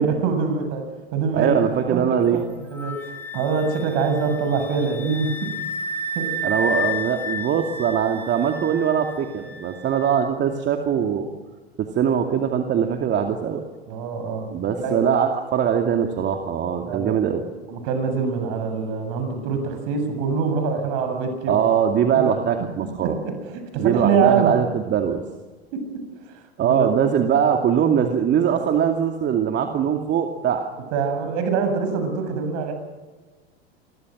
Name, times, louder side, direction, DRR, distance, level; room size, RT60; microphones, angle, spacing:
voice 1, 0.0-1.5 1.9-5.5 6.2-6.3 13.9-14.5 14.8-15.0 16.8-17.2 17.7-21.6 22.1-22.3 22.6-22.7 23.0-24.6 25.7-26.3 26.6-26.9 30.9-32.7, right 5 dB, 55° right, 7 dB, 7.3 m, -25 dB
voice 2, 1.3-2.4 6.4-11.3 11.8-13.6 14.5-17.4 21.5-23.2 23.8-25.2 26.6-30.7, right 8 dB, 35° right, 4 dB, 2.5 m, -21 dB
Wind instrument woodwind instrument, 2.8-10.2, left 1 dB, 5° left, 3.4 m, -31 dB
29.0 x 23.0 x 6.4 m, 1.3 s
figure-of-eight pair, 85°, 31 cm